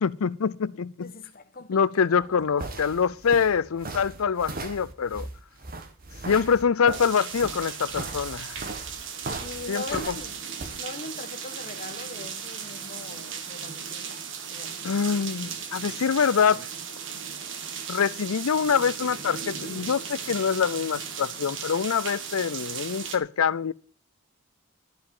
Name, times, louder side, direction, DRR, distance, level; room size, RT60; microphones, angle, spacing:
voice 1, 0.0-1.1 1.7-5.3 6.2-8.6 9.7-10.1 14.8-16.7 17.9-23.7, left 6 dB, 90° left, 0.5 m, -25 dB
voice 2, 1.0-2.4 8.9-9.1 9.4-14.8, left 2 dB, 45° left, 1.4 m, -41 dB
sound 1, 2.1-10.8, right 2 dB, 45° right, 1.5 m, -38 dB
sound 2, 6.9-23.2, right 7 dB, 60° right, 1.7 m, -36 dB
13.0 x 5.3 x 8.8 m
head